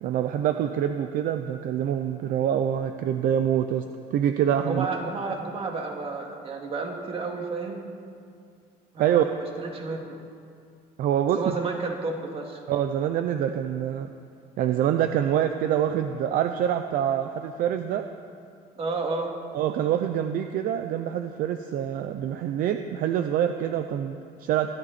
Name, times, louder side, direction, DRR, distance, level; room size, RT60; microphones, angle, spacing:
voice 1, 0.0-3.8 4.1-4.9 9.0-9.2 11.0-11.6 12.7-14.1 14.6-18.1 19.5-24.7, right 10 dB, 60° right, 7 dB, 0.7 m, -25 dB
voice 2, 4.6-7.8 8.9-10.2 11.4-12.6 18.8-19.4, right 3 dB, 35° right, 1 dB, 2.4 m, -31 dB
23.5 x 14.0 x 4.3 m, 2.3 s
cardioid pair, 150°, 16 cm